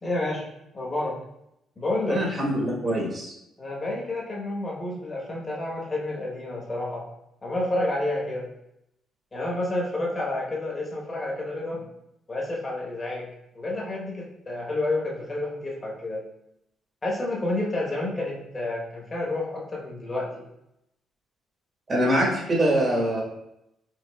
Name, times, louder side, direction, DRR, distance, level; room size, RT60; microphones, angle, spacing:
voice 1, 0.0-0.4 0.7-1.2 1.8-2.2 3.6-7.1 7.4-8.5 9.3-11.9 12.3-13.3 13.5-16.2 17.0-20.5, left 2 dB, 30° left, -4 dB, 1.1 m, -29 dB
voice 2, 2.1-3.3 21.9-23.2, right 1 dB, 40° right, -3 dB, 1.2 m, -24 dB
4.6 x 2.7 x 2.3 m, 0.82 s
cardioid pair, 90°, 0 cm